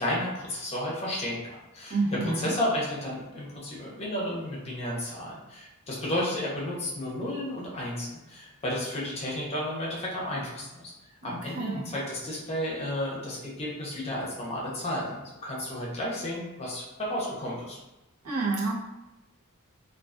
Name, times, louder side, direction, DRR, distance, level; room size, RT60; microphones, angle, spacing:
voice 1, 0.0-10.9 11.2-17.8, left 1 dB, 30° left, -4 dB, 0.6 m, -32 dB
voice 2, 1.9-2.5 11.3-11.9 18.2-18.8, right 3 dB, 90° right, -6 dB, 0.7 m, -29 dB
2.4 x 2.3 x 2.4 m, 0.99 s
head